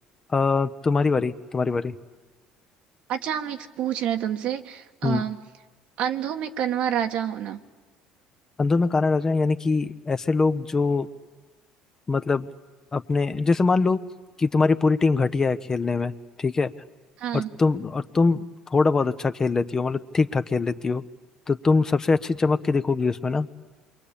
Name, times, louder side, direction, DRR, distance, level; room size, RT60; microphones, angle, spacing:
voice 1, 0.3-2.0 5.0-5.2 8.6-11.1 12.1-12.5 12.9-14.0 14.4-16.7 17.3-18.4 18.7-21.0 21.5-23.5, left 4 dB, 30° left, 10 dB, 1.0 m, -23 dB
voice 2, 3.1-5.4 6.0-7.6 17.2-17.5, right 9 dB, 65° right, 7 dB, 1.4 m, -28 dB
27.5 x 23.0 x 8.7 m, 1.3 s
supercardioid pair, 80°, 2 cm